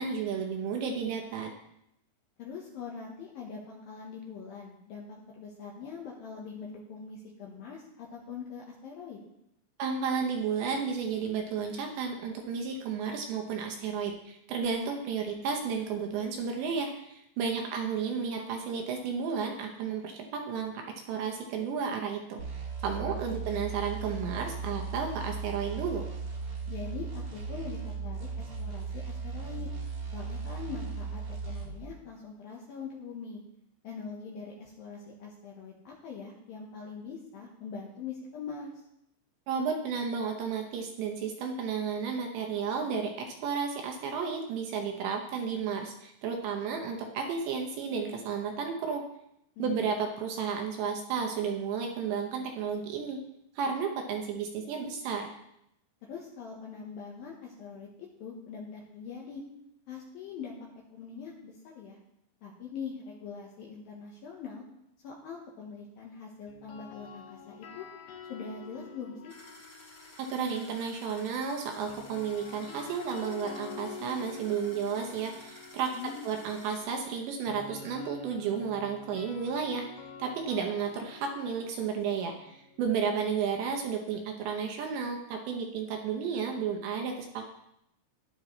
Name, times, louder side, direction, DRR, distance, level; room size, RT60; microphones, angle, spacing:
voice 1, 0.0-1.5 9.8-22.4 22.8-26.1 39.5-49.1 49.6-53.2 53.6-55.3 70.2-75.9 76.2-87.4, right 6 dB, 75° right, 2 dB, 2.8 m, -32 dB
voice 2, 2.4-9.2 17.4-17.7 23.0-23.5 26.7-29.7 30.1-33.4 33.8-38.7 49.6-49.9 56.0-57.9 58.2-59.4 59.9-62.0 62.4-64.6 65.0-67.9 68.3-69.3 75.9-76.4 82.9-83.1, left 5 dB, 85° left, -2 dB, 2.0 m, -43 dB
sound 1, 22.4-31.8, right 5 dB, 45° right, 1.9 m, -37 dB
sound 2, 66.5-70.7 71.9-83.8, left 5 dB, 65° left, 2.6 m, -48 dB
sound 3, 69.3-76.8, left 1 dB, 25° left, 1.8 m, -53 dB
12.5 x 10.5 x 3.2 m, 0.80 s
omnidirectional pair, 5.9 m